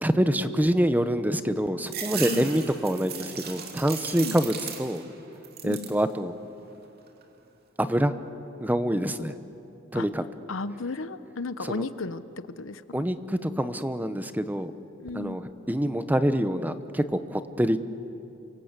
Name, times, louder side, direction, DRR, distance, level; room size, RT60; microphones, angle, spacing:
voice 1, 0.0-5.0 5.6-6.3 7.8-8.1 8.6-9.4 9.9-10.2 11.7-11.8 12.9-14.7 15.1-15.4 15.7-17.8, equal, 10° right, 11 dB, 0.9 m, -26 dB
sound 1, 1.8-5.1 5.4-6.0 6.5-7.2, right 7 dB, 50° right, 2.7 m, -37 dB
voice 2, 10.5-12.2 12.6-13.1 15.0-15.4, left 3 dB, 80° left, 13 dB, 1.0 m, -34 dB
28.5 x 24.5 x 8.2 m, 2.9 s
head